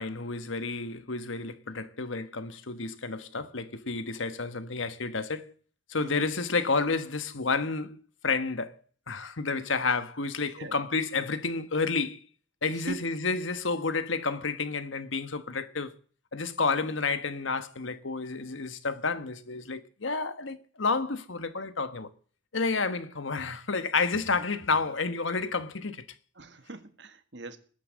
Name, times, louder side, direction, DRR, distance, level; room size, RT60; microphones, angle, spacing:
voice 1, 0.0-5.5 5.9-8.7 9.1-12.2 12.6-15.9 16.3-22.1 22.5-26.0, left 4 dB, 85° left, 1.4 m, -30 dB
voice 2, 26.4-27.6, right 2 dB, 65° right, 1.8 m, -41 dB
20.0 x 9.0 x 7.6 m
head